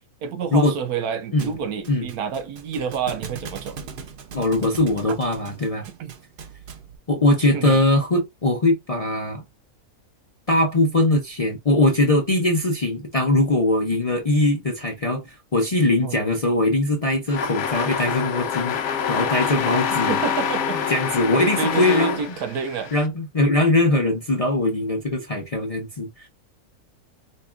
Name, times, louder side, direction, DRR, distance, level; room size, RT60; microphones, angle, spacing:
voice 1, 0.2-3.8 5.1-5.2 5.8-6.1 7.5-7.8 16.0-16.2 20.1-20.9 21.6-22.9, right 6 dB, 80° right, 1.2 m, -28 dB
Thump thud, 1.4-7.0, right 6 dB, 60° right, 0.5 m, -39 dB
voice 2, 4.3-5.8 7.1-9.4 10.5-20.2 20.9-22.2 22.9-26.3, left 2 dB, 40° left, 0.5 m, -21 dB
sound 1, 17.3-23.1, left 7 dB, 60° left, 0.9 m, -26 dB
5.2 x 2.3 x 2.4 m
omnidirectional pair, 1.5 m